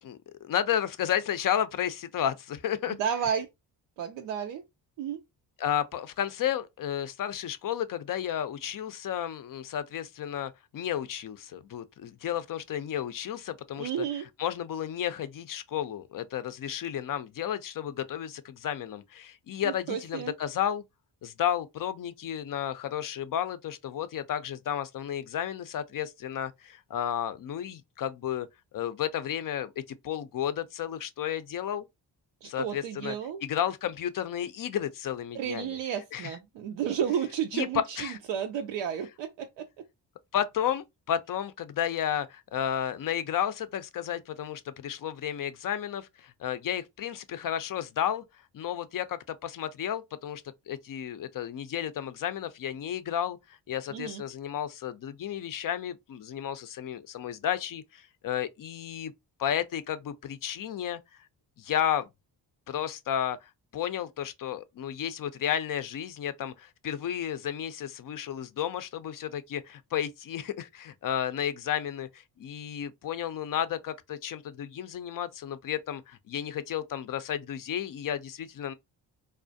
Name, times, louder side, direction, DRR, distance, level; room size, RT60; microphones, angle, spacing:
voice 1, 0.0-3.0 5.6-14.0 14.4-20.8 21.2-28.5 28.7-31.9 32.4-33.1 33.4-35.8 36.1-36.4 37.5-37.7 38.0-38.2 40.3-48.2 48.5-53.4 53.7-59.1 59.4-61.0 61.6-62.1 62.7-78.7, left 10 dB, 50° left, 0.5 m, -32 dB
voice 2, 2.9-3.5 4.0-4.6 5.0-5.2 13.8-14.2 19.6-20.3 32.4-33.4 35.3-39.8 53.9-54.2, right 8 dB, 75° right, 0.5 m, -32 dB
2.3 x 2.1 x 2.5 m
supercardioid pair, 50°, 45 cm